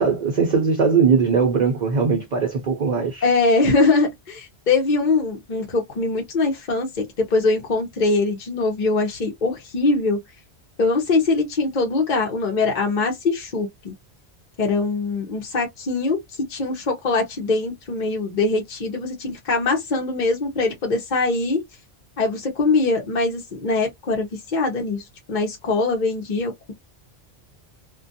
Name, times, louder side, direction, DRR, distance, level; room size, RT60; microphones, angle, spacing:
voice 1, 0.0-3.2, right 5 dB, 50° right, 0.6 m, -20 dB
voice 2, 3.2-10.2 10.8-13.9 14.6-21.6 22.2-25.0 25.3-26.7, left 3 dB, 45° left, 0.9 m, -22 dB
2.4 x 2.2 x 2.6 m
omnidirectional pair, 1.1 m